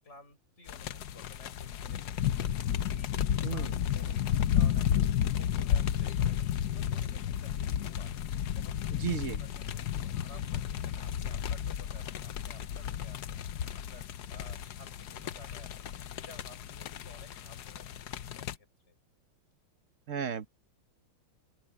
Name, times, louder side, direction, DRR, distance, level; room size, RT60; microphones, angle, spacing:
voice 1, 0.0-3.2 3.5-9.1 9.4-13.4 13.9-19.0, left 2 dB, 30° left, 6.3 m, -55 dB
sound 1, 0.7-18.6, left 10 dB, 60° left, 1.2 m, -32 dB
voice 2, 3.4-3.7 8.9-9.4 20.1-20.5, right 8 dB, 45° right, 1.1 m, -34 dB
open air
omnidirectional pair, 2.3 m